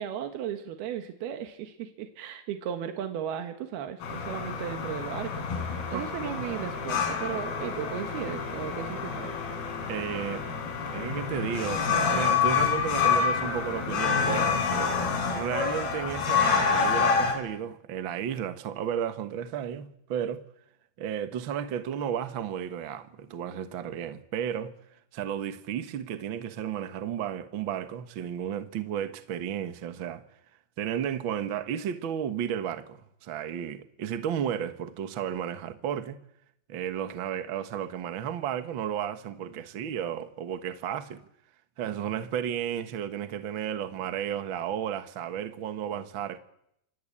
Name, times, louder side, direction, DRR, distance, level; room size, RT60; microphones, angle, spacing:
voice 1, 0.0-5.5 5.9-9.4, right 9 dB, 85° right, 3.5 m, -35 dB
sound 1, 4.0-17.4, left 6 dB, 85° left, 5.6 m, -28 dB
voice 2, 5.9-6.4 9.9-10.4 10.9-14.6 15.3-20.5 21.0-24.7 25.1-30.2 30.8-36.2 36.7-41.2 41.8-46.4, right 9 dB, 60° right, 1.2 m, -33 dB
28.5 x 24.5 x 8.6 m
omnidirectional pair, 4.4 m